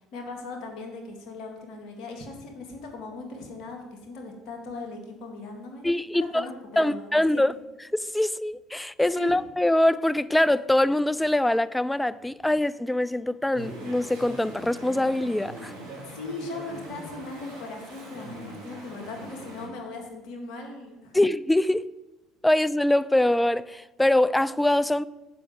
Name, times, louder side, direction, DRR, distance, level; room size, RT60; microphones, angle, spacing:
voice 1, 0.1-5.8 6.1-7.4 9.1-9.3 16.0-21.1, left 3 dB, 60° left, 1.6 m, -39 dB
voice 2, 5.8-6.5 6.8-7.5 7.9-15.7 21.1-21.9 22.4-25.0, left 1 dB, 10° left, 0.3 m, -23 dB
Chatter / Stream, 13.5-19.7, right 1 dB, 80° right, 2.0 m, -41 dB
6.9 x 4.9 x 6.9 m
hypercardioid pair, 60°, 0 cm